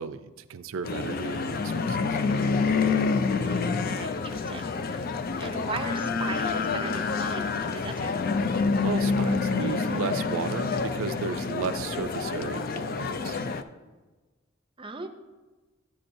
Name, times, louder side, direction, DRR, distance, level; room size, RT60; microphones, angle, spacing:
voice 1, 0.0-2.2 8.8-13.4, right 6 dB, 85° right, 12 dB, 0.4 m, -34 dB
sound 1, 0.8-13.6, left 4 dB, 45° left, 0.4 m, -27 dB
voice 2, 3.4-8.1 14.8-15.1, right 3 dB, 25° right, 6 dB, 0.6 m, -39 dB
10.0 x 8.4 x 2.6 m, 1.3 s
head